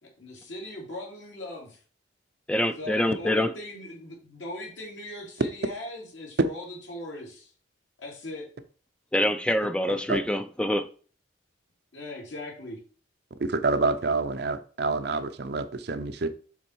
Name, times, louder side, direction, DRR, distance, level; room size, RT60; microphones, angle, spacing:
voice 1, 0.0-1.8 2.8-7.5 8.0-8.4 11.9-12.8, left 1 dB, 80° left, 2.5 m, -39 dB
voice 2, 2.5-3.5 9.1-10.9, left 1 dB, 5° left, 0.4 m, -25 dB
voice 3, 9.9-10.2 13.4-16.3, right 3 dB, 55° right, 0.6 m, -28 dB
7.3 x 3.5 x 4.6 m
head